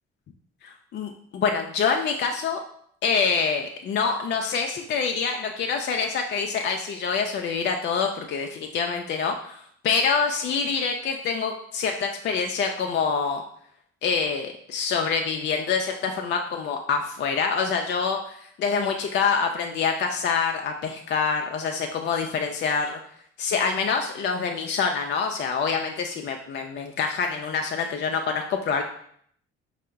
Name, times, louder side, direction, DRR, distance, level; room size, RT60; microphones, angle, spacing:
voice 1, 0.6-2.6 3.0-13.4 14.0-23.0 23.4-28.8, left 5 dB, 35° left, 3 dB, 0.4 m, -26 dB
4.3 x 2.0 x 3.3 m, 0.65 s
hypercardioid pair, 50°, 33 cm